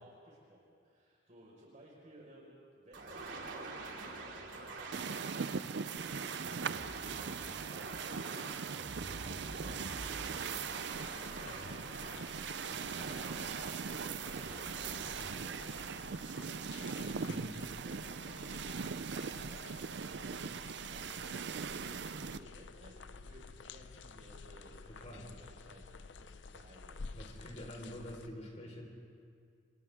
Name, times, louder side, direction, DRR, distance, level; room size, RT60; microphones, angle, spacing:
voice 1, 0.0-7.2 7.5-27.9, right 1 dB, 40° right, -5 dB, 4.8 m, -58 dB
sound 1, 2.9-16.8, right 2 dB, 80° right, 2.8 m, -46 dB
sound 2, 4.9-22.4, right 6 dB, 60° right, 0.5 m, -40 dB
sound 3, 10.9-28.3, left 4 dB, 70° left, 0.7 m, -51 dB
voice 2, 17.2-17.6 24.9-25.3 27.1-28.8, equal, 35° left, 0 dB, 4.4 m, -46 dB
27.5 x 27.5 x 3.6 m, 2.2 s
head